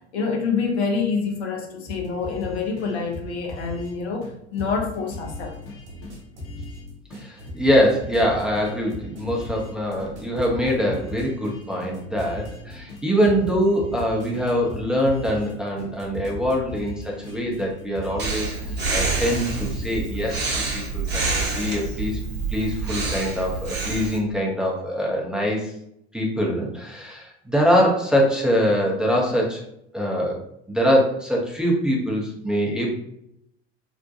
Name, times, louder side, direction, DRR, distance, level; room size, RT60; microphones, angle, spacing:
voice 1, 0.1-5.6, left 5 dB, 70° left, 2 dB, 0.7 m, -26 dB
sound 1, 1.9-3.9 4.2-4.3 4.6-6.8 7.1-9.7 10.0-12.6 12.9-15.5 15.8-15.9 16.1-18.4 18.7-19.9, left 2 dB, 40° left, 0.8 m, -39 dB
sound 2, 4.6-21.6, equal, 90° right, 0.6 m, -42 dB
voice 2, 7.1-18.5 18.9-20.4 20.7-22.2 22.5-25.7 26.1-29.6 29.9-30.4 30.7-32.9, equal, ahead, -3 dB, 0.5 m, -23 dB
Breathing, 18.2-24.2, right 3 dB, 30° right, 0.8 m, -27 dB
2.5 x 2.1 x 2.6 m, 0.77 s
figure-of-eight pair, 80°, 33 cm